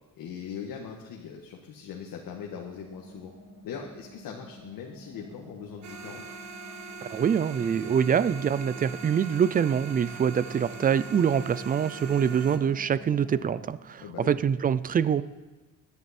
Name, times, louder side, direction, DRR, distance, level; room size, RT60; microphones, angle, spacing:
voice 1, 0.1-3.3 3.6-6.2 14.0-14.4, left 7 dB, 75° left, 0 dB, 1.6 m, -40 dB
sound 1, 2.7-13.7, equal, 70° right, 4.8 m, -49 dB
sound 2, 5.8-12.6, right 4 dB, 55° right, 1.6 m, -42 dB
voice 2, 7.1-15.2, right 7 dB, 25° right, 17 dB, 0.3 m, -25 dB
17.0 x 11.0 x 4.3 m, 1.3 s
cardioid pair, 150°, 35 cm